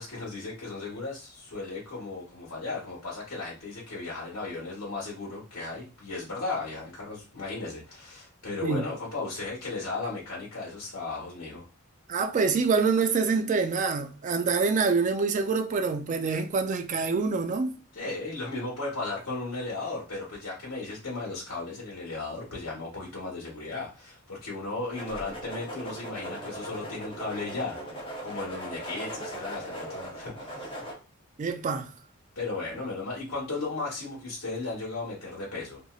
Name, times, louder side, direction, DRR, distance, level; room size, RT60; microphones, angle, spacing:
voice 1, 0.0-11.6 17.9-27.8 28.2-30.8 32.3-35.8, left 3 dB, 80° left, 1.1 m, -35 dB
voice 2, 12.1-17.8 31.4-31.9, right 4 dB, 35° right, 0.3 m, -26 dB
sound 1, 24.9-30.9, right 1 dB, 25° left, 0.9 m, -39 dB
3.0 x 2.7 x 2.3 m
head